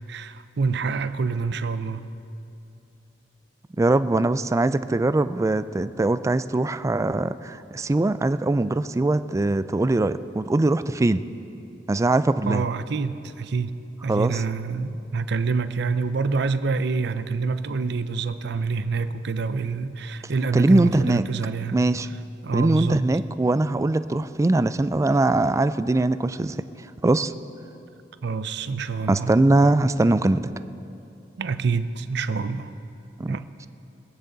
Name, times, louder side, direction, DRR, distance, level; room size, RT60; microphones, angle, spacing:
voice 1, 0.1-2.1 12.5-13.7 14.0-21.8 22.4-23.0 28.2-29.3 31.4-32.7 33.3-33.5, right 4 dB, 65° right, 12 dB, 0.6 m, -27 dB
voice 2, 3.8-11.2 11.9-12.6 14.1-14.4 20.5-21.3 21.7-22.1 22.5-26.6 27.0-27.3 29.1-30.4 33.2-33.4, right 2 dB, 15° right, 13 dB, 0.3 m, -21 dB
24.0 x 9.2 x 4.0 m, 2.7 s
head